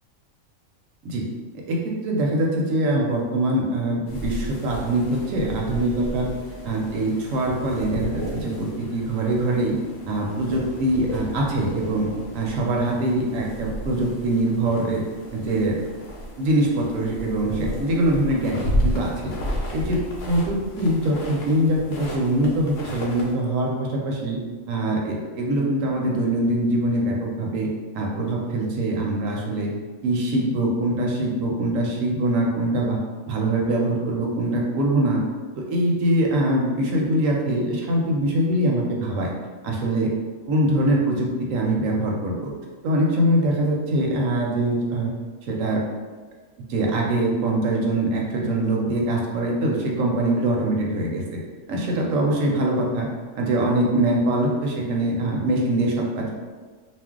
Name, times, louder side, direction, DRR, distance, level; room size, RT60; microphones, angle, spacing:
voice 1, 1.7-6.3 6.6-9.8 10.1-12.1 12.3-15.0 15.3-15.8 16.4-19.4 19.7-20.0 20.3-24.4 24.7-27.7 27.9-29.7 30.0-33.0 33.3-35.2 35.6-39.3 39.6-40.1 40.5-42.5 42.8-45.1 45.5-45.8 46.7-51.4 51.7-53.1 53.4-56.3, right 1 dB, 70° right, -1 dB, 0.9 m, -23 dB
sound 1, 4.1-23.3, equal, 60° left, 0.7 m, -33 dB
2.5 x 2.0 x 3.5 m, 1.5 s
omnidirectional pair, 1.5 m